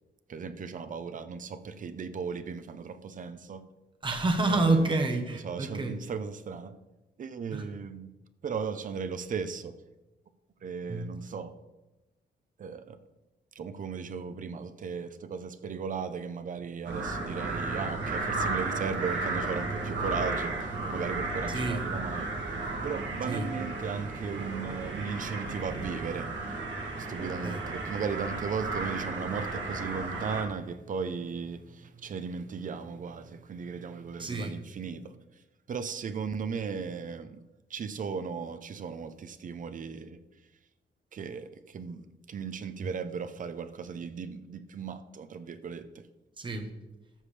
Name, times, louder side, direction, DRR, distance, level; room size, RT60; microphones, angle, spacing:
voice 1, 0.3-3.6 4.5-4.9 5.4-6.8 7.2-8.1 8.4-9.7 10.6-11.5 12.6-13.0 13.5-26.6 27.0-35.2 35.7-37.4 37.7-40.2 41.1-46.0, right 6 dB, 45° right, 0.6 m, -36 dB
voice 2, 4.0-5.9 7.5-7.6 10.9-11.1 21.5-21.8 23.3-23.5 27.4-27.6 34.2-34.6 46.4-46.7, right 2 dB, 25° right, 1.1 m, -28 dB
sound 1, 16.9-30.4, right 3 dB, 85° right, 1.9 m, -34 dB
13.0 x 6.8 x 3.3 m
wide cardioid pair, 170°, 18 cm